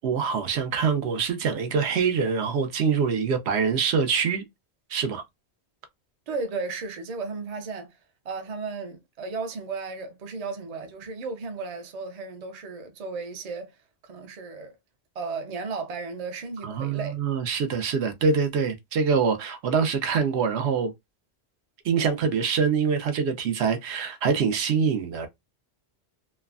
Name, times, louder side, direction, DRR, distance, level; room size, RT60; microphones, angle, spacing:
voice 1, 0.0-4.4 4.9-5.2 16.6-20.9 21.8-25.3, right 6 dB, 80° right, 0.8 m, -24 dB
voice 2, 6.3-7.9 8.2-13.7 14.1-14.8 15.1-17.2, right 4 dB, 45° right, 0.6 m, -34 dB
3.1 x 2.1 x 2.3 m
omnidirectional pair, 1.1 m